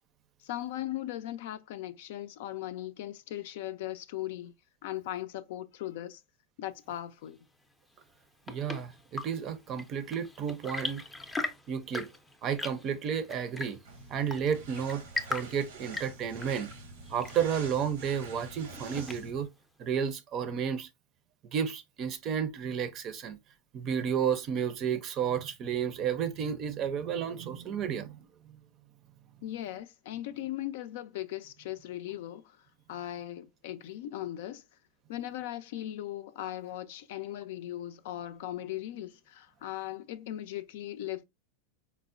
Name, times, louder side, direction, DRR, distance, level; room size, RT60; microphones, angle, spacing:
voice 1, 0.4-4.5 4.8-6.2 6.6-7.4 29.4-32.6 32.9-34.6 35.1-41.2, left 13 dB, 70° left, 0.4 m, -38 dB
Chirp tweet / Engine / Tap, 8.0-19.5, left 3 dB, 10° left, 0.5 m, -41 dB
voice 2, 8.5-11.0 11.7-12.1 12.4-13.8 14.1-15.0 15.3-16.7 17.1-19.5 19.8-20.9 21.5-23.4 23.7-28.2, right 8 dB, 40° right, 0.5 m, -32 dB
sound 1, 13.9-19.4, right 3 dB, 85° right, 0.9 m, -46 dB
4.4 x 2.0 x 2.5 m
supercardioid pair, 120°, 0 cm